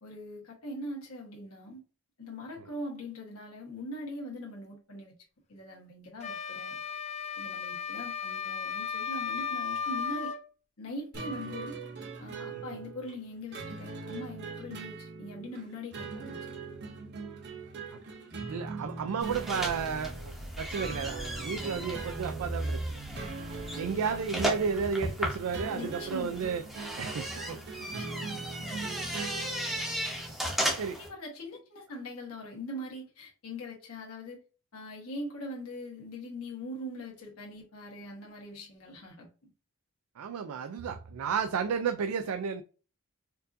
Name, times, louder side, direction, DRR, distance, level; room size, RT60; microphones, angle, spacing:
voice 1, 0.0-1.8 2.2-5.1 5.5-6.8 7.4-10.3 10.8-11.8 12.2-16.6 25.7-26.4 27.8-29.0 31.0-34.4 34.7-39.5, left 1 dB, 75° left, 1.2 m, -42 dB
sound 1, 6.2-10.4, left 6 dB, 30° left, 0.4 m, -35 dB
sound 2, 11.1-30.3, right 4 dB, 50° right, 0.7 m, -41 dB
voice 2, 18.5-23.0 23.7-26.6 27.0-27.6 29.8-29.9 30.8-31.0 40.2-42.6, right 6 dB, 75° right, 0.3 m, -33 dB
sound 3, 19.2-31.1, right 1 dB, ahead, 0.7 m, -36 dB
4.5 x 2.5 x 2.5 m
head